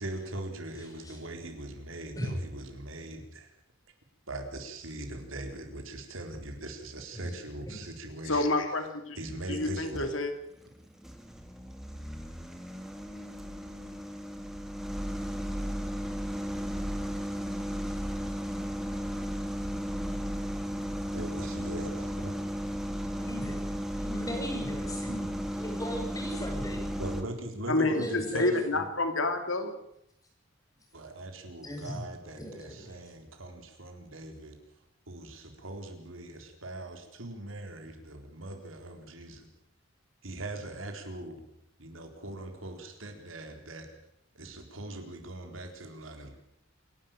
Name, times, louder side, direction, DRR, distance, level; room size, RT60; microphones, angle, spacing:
voice 1, 0.0-3.5 4.3-8.5 9.2-10.2 21.1-22.4 27.0-28.9 30.9-34.6 35.1-39.3 40.2-41.3 41.8-43.8 44.4-46.4, right 1 dB, 85° right, 5 dB, 4.1 m, -41 dB
voice 2, 8.3-9.2 9.5-10.3 27.7-29.7, left 2 dB, 80° left, 7 dB, 2.7 m, -28 dB
sound 1, 9.4-10.1 10.6-27.2, equal, ahead, 2.1 m, -35 dB
voice 3, 23.2-23.6 24.0-26.9 27.9-28.6 31.6-32.0 32.3-32.5, equal, 20° left, 1 dB, 7.9 m, -38 dB
27.0 x 12.0 x 9.0 m, 0.79 s
head